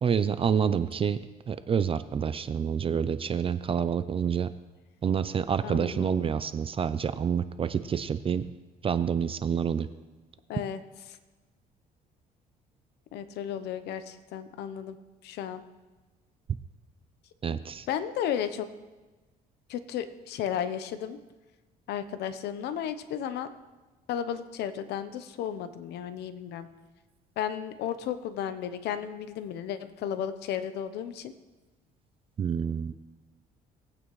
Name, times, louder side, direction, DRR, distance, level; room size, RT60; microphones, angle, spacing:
voice 1, 0.0-1.2 1.5-4.5 5.0-8.5 8.8-9.9 17.4-17.9 32.4-32.9, right 7 dB, 35° right, 12 dB, 0.5 m, -28 dB
voice 2, 5.6-6.3 10.5-10.8 11.1-11.2 13.1-15.0 15.2-15.6 17.5-17.6 17.9-18.7 19.7-21.2 21.9-23.5 24.1-26.7 27.4-31.3, left 9 dB, 75° left, 11 dB, 0.9 m, -34 dB
19.5 x 8.8 x 3.2 m, 1.2 s
cardioid pair, 110°, 17 cm